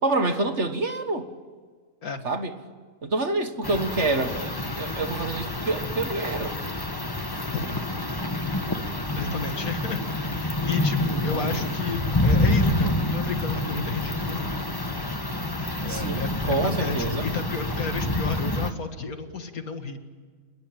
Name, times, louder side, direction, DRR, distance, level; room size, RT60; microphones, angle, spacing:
voice 1, 0.0-1.3 2.2-2.5 3.0-6.5 11.3-11.6 15.9-17.3, right 2 dB, 50° right, 8 dB, 1.9 m, -27 dB
sound 1, 3.6-18.7, left 1 dB, 15° left, 1.4 m, -27 dB
voice 2, 9.2-14.4 15.5-20.0, left 4 dB, 65° left, 7 dB, 2.3 m, -33 dB
29.0 x 21.0 x 8.9 m, 1.5 s
omnidirectional pair, 1.6 m